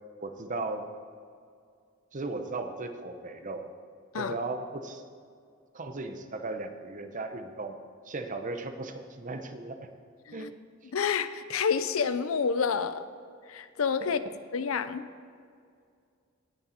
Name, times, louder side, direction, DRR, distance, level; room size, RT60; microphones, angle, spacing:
voice 1, 0.2-0.9 2.1-3.7 4.1-5.0 5.7-7.8 8.0-9.9 10.3-10.5 14.2-14.3, right 2 dB, 40° right, 7 dB, 0.8 m, -36 dB
voice 2, 10.9-13.1 13.5-14.2 14.5-15.1, left 6 dB, 90° left, 12 dB, 0.6 m, -28 dB
17.5 x 6.6 x 4.4 m, 2.2 s
head